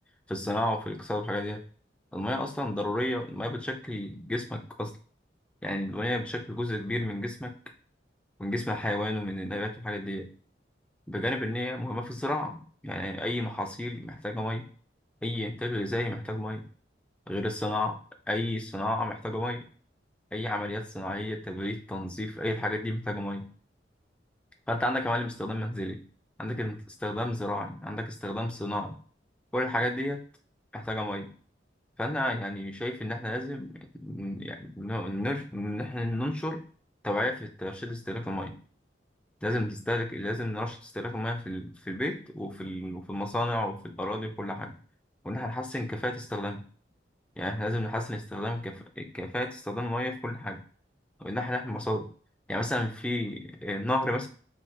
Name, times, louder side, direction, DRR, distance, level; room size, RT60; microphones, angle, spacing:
voice 1, 0.3-1.6 2.1-4.9 5.6-7.6 8.4-10.3 11.1-14.7 15.2-16.7 17.3-18.0 18.3-19.6 20.3-23.5 24.7-26.0 26.4-29.0 29.5-30.2 30.7-31.3 32.0-36.6 37.0-38.5 39.4-44.8 45.2-46.6 47.4-50.6 51.2-52.1 52.5-54.3, left 1 dB, 5° left, 3 dB, 0.4 m, -32 dB
3.2 x 2.7 x 2.3 m, 0.43 s
head